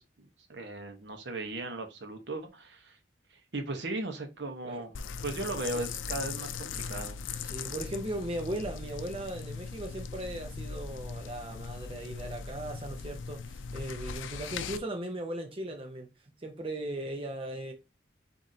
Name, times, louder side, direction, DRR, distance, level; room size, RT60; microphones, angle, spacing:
voice 1, 0.0-3.0 3.5-4.9 5.2-7.2, right 2 dB, 70° right, 0.9 m, -37 dB
sound 1, 5.0-14.8, left 5 dB, 90° left, 0.4 m, -39 dB
voice 2, 7.4-17.7, right 1 dB, 30° right, 0.6 m, -38 dB
7.3 x 2.6 x 2.7 m
head